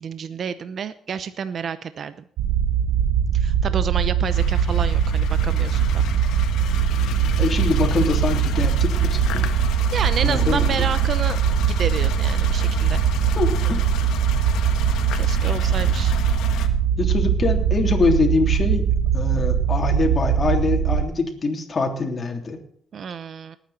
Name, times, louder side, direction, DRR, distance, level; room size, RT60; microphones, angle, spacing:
voice 1, 0.0-2.1 3.3-5.8 9.9-13.1 15.1-16.2 22.9-23.6, right 7 dB, 55° right, 13 dB, 0.7 m, -30 dB
sound 1, 2.4-21.1, right 8 dB, 90° right, 0.7 m, -21 dB
sound 2, 4.3-16.7, left 9 dB, 85° left, 1.5 m, -32 dB
voice 2, 7.4-9.5 10.2-10.8 13.3-13.8 17.0-18.8 19.1-22.6, left 3 dB, 40° left, 3 dB, 3.2 m, -24 dB
19.5 x 9.2 x 4.3 m, 0.63 s
cardioid pair, 90°, 0 cm